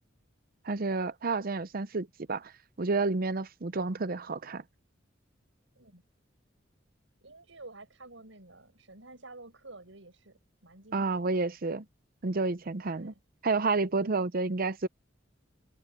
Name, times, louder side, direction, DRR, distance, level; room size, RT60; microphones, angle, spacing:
voice 1, 0.6-2.5 2.8-4.6 10.9-11.8 12.2-13.1 13.4-14.9, right 3 dB, 50° right, 0.7 m, -30 dB
voice 2, 7.2-11.4 12.9-13.2 14.0-14.3, right 2 dB, 85° right, 5.5 m, -50 dB
head